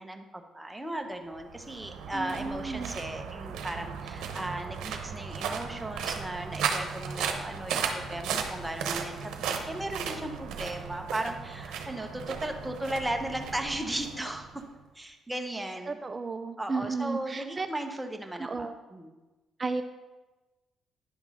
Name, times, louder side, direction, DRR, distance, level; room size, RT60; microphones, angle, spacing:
voice 1, 0.0-14.6 14.9-16.0 16.6-19.1, right 1 dB, 10° right, 4 dB, 0.9 m, -36 dB
sound 1, 1.3-14.7, right 7 dB, 85° right, 0.8 m, -36 dB
voice 2, 2.1-2.9 15.9-17.7 18.4-18.8 19.6-19.8, right 4 dB, 30° right, 8 dB, 0.4 m, -33 dB
10.0 x 3.7 x 6.2 m, 1.2 s
cardioid pair, 90°, 0 cm